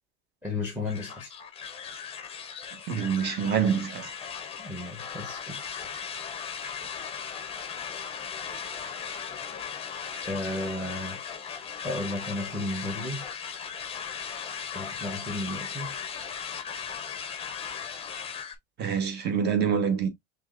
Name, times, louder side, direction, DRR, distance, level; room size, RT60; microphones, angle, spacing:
voice 1, 0.4-1.3 4.6-5.7 10.2-11.4 11.8-13.2 14.7-16.0, left 2 dB, 5° right, 1.0 m, -34 dB
sound 1, 0.9-18.6, left 7 dB, 20° left, 0.8 m, -37 dB
voice 2, 2.7-4.1 18.8-20.1, right 7 dB, 30° right, 1.2 m, -26 dB
5.7 x 3.4 x 2.4 m
cardioid pair, 160°, 33 cm